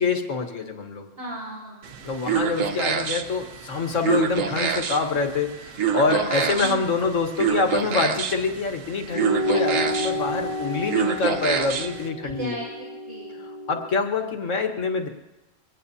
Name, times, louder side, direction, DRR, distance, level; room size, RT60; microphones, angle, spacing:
voice 1, 0.0-1.0 2.0-12.6 13.4-15.1, left 4 dB, 75° left, 4 dB, 1.8 m, -26 dB
voice 2, 1.2-2.0 6.1-6.8 12.2-12.7 13.0-13.4, right 1 dB, 50° right, -8 dB, 3.1 m, -35 dB
sound 1, 1.8-12.1, right 7 dB, 80° right, 1.4 m, -28 dB
sound 2, 9.1-13.9, left 1 dB, 50° left, 0.4 m, -30 dB
24.0 x 18.5 x 2.8 m, 1.1 s
omnidirectional pair, 1.3 m